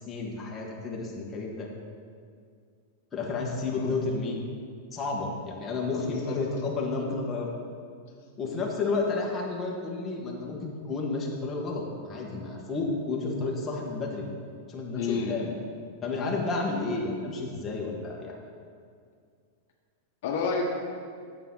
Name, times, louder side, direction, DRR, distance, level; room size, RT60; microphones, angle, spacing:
voice 1, 0.1-1.7 3.1-4.4 4.9-7.5 8.4-14.3 14.7-15.5 16.0-18.4, left 3 dB, 20° left, -2 dB, 1.6 m, -31 dB
voice 2, 6.1-6.4 15.0-15.5 20.2-20.6, left 5 dB, 65° left, 0 dB, 1.1 m, -30 dB
9.1 x 7.3 x 3.9 m, 2.2 s
hypercardioid pair, 125°, 0 cm